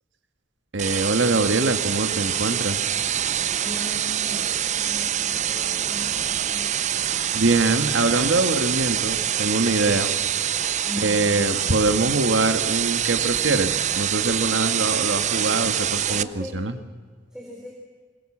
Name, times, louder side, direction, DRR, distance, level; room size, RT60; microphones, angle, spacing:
voice 1, 0.7-2.9 7.3-10.1 11.0-16.3 16.5-16.7, right 2 dB, 75° right, 7 dB, 1.7 m, -23 dB
sound 1, 0.8-16.2, right 10 dB, 40° right, 0.6 m, -25 dB
voice 2, 3.6-6.6 10.8-11.4 16.1-16.6 17.3-17.7, left 1 dB, 5° right, -2 dB, 3.7 m, -38 dB
21.5 x 20.5 x 7.4 m, 1.5 s
head